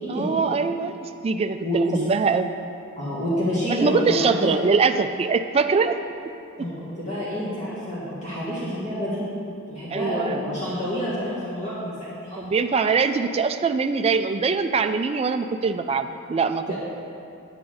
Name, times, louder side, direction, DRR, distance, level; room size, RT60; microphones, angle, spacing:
voice 1, 0.1-2.5 3.7-6.0 9.9-10.5 12.4-16.8, right 5 dB, 25° right, 7 dB, 0.3 m, -23 dB
voice 2, 1.6-2.1 3.0-4.5 6.6-9.2 9.7-12.4 16.7-16.8, equal, 35° left, -11 dB, 2.3 m, -28 dB
9.6 x 9.2 x 3.9 m, 2.8 s
head